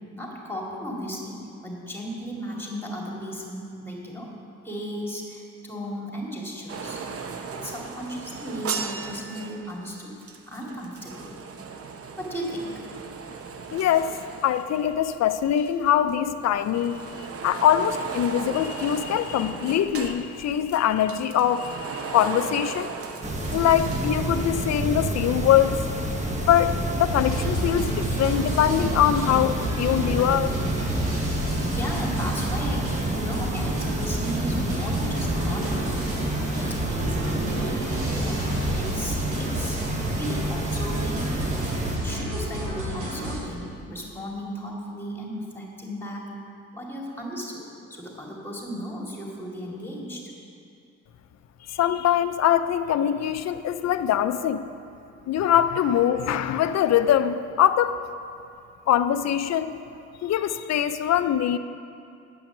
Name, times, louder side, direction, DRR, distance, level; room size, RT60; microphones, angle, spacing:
voice 1, 0.1-1.4 1.6-4.3 4.6-7.0 7.5-10.1 10.5-11.4 12.2-12.8 31.5-35.9 36.6-39.8 40.1-41.3 41.9-46.3 46.7-50.3, equal, 5° left, -2 dB, 2.3 m, -35 dB
sound 1, 6.7-15.3 15.6-24.8 25.0-25.1, right 5 dB, 50° right, 0.8 m, -37 dB
voice 2, 13.7-14.2 14.4-22.9 23.5-25.8 26.5-30.5 51.7-54.7 55.3-57.9 58.9-59.8 60.2-61.6, left 10 dB, 60° left, 11 dB, 0.5 m, -23 dB
sound 2, 23.2-42.0, right 1 dB, 25° right, 1.3 m, -29 dB
sound 3, 27.1-43.4, right 1 dB, 90° right, 2.1 m, -31 dB
9.4 x 5.9 x 7.2 m, 2.5 s
cardioid pair, 90°, 30 cm